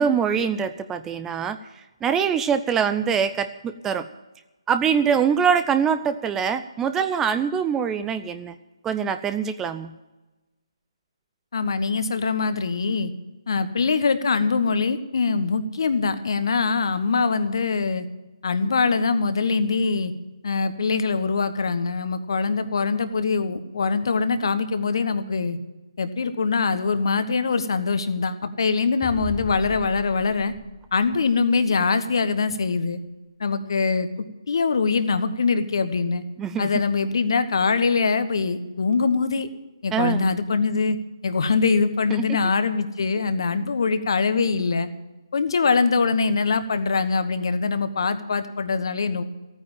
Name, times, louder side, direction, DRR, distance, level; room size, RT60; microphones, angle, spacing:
voice 1, 0.0-1.6 2.0-4.1 4.7-8.5 8.8-9.9 36.4-36.7 39.9-40.2 42.1-42.4, right 7 dB, 10° right, 11 dB, 0.5 m, -23 dB
voice 2, 11.5-13.1 13.5-18.0 18.4-20.1 20.4-25.6 26.0-30.5 30.9-33.0 33.4-36.2 36.6-39.5 39.8-41.0 41.2-44.9 45.3-49.2, left 4 dB, 55° left, 11 dB, 1.3 m, -23 dB
sound 1, 29.0-31.7, left 3 dB, 5° left, 1.2 m, -40 dB
15.0 x 9.3 x 7.2 m, 1.1 s
figure-of-eight pair, 145°, 3 cm